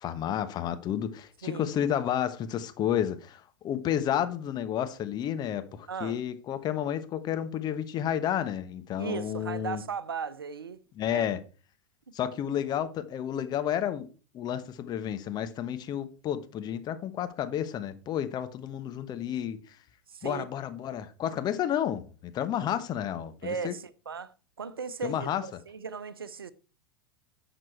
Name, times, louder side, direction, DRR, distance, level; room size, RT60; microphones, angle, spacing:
voice 1, 0.0-9.8 11.0-11.4 12.1-14.1 14.3-19.7 20.2-23.7 25.0-25.4, left 10 dB, 35° left, 1.2 m, -31 dB
voice 2, 5.9-6.2 9.0-10.8 11.1-11.3 20.1-20.5 23.4-26.5, right 6 dB, 80° right, 0.7 m, -37 dB
11.0 x 6.8 x 4.6 m
figure-of-eight pair, 90°, 12 cm